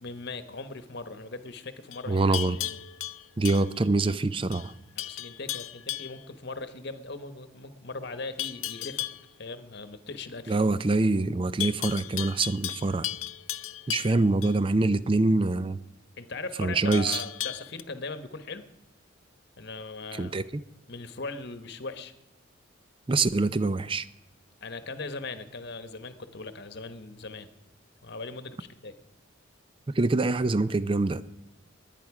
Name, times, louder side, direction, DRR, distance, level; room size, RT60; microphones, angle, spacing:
voice 1, 0.0-2.8 5.0-9.1 9.4-10.6 14.0-14.2 16.2-18.6 19.6-20.4 20.9-22.1 24.6-27.5 28.0-29.0, left 3 dB, 55° left, 10 dB, 1.1 m, -39 dB
Livestock farm animals working animals, 1.9-4.1 4.5-4.7 5.0-6.2 8.4-9.3 11.6-14.6 16.9-17.8, left 14 dB, 80° left, 0.5 m, -35 dB
voice 2, 2.1-2.6 3.4-4.7 10.5-13.1 13.9-15.8 16.6-17.2 20.1-20.6 23.1-24.1 29.9-31.2, right 3 dB, 25° right, 15 dB, 0.4 m, -25 dB
21.0 x 9.2 x 4.8 m, 0.96 s
head